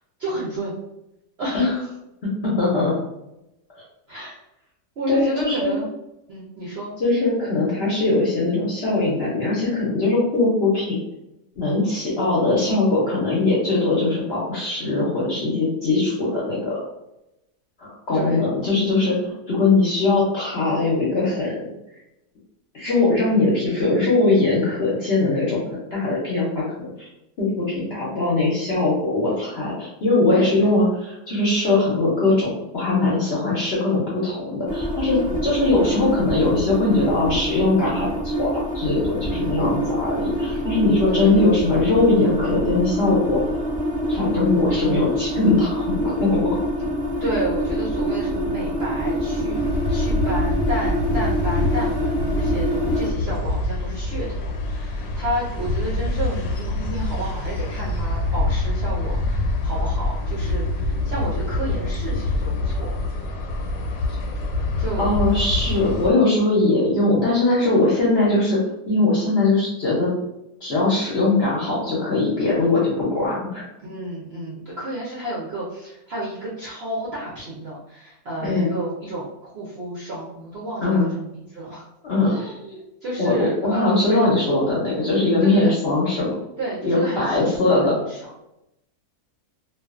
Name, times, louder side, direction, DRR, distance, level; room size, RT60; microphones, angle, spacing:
voice 1, 0.2-0.8 1.4-1.9 4.1-4.4 5.0-5.9 6.3-6.9 18.1-18.5 30.2-30.7 35.3-35.4 39.3-39.6 40.5-40.6 41.1-41.4 47.2-49.6 49.9-63.0 64.8-65.0 73.8-81.9 82.2-84.3 85.4-85.8 86.6-88.2, right 1 dB, 60° right, -6 dB, 0.6 m, -31 dB
voice 2, 2.4-2.9 5.1-5.7 7.0-11.0 11.6-16.7 17.8-21.7 22.7-25.6 25.9-27.1 27.4-43.4 44.1-46.4 65.0-68.6 68.9-70.1 70.6-73.6 78.4-78.7 80.8-81.1 82.0-82.3 83.2-86.3 86.8-87.9, left 2 dB, 55° left, -6 dB, 0.7 m, -21 dB
sound 1, 34.7-53.1, equal, 10° right, 0.5 m, -25 dB
sound 2, 49.5-66.1, left 2 dB, 85° left, 1.1 m, -25 dB
2.4 x 2.3 x 2.4 m, 0.89 s
omnidirectional pair, 1.7 m